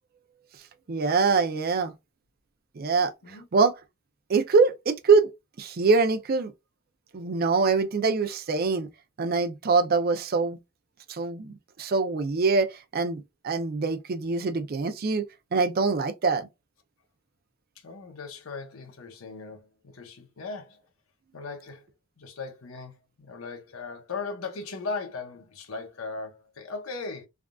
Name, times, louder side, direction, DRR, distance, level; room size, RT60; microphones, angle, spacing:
voice 1, 0.9-1.9 2.8-3.1 3.5-3.7 4.3-5.3 5.6-6.5 7.1-8.9 9.2-10.6 11.1-11.5 11.8-15.2 15.5-16.5, right 4 dB, 45° right, 0.5 m, -24 dB
voice 2, 17.8-20.8 21.3-21.8 22.2-27.3, left 4 dB, 90° left, 0.8 m, -38 dB
3.5 x 2.4 x 2.3 m
head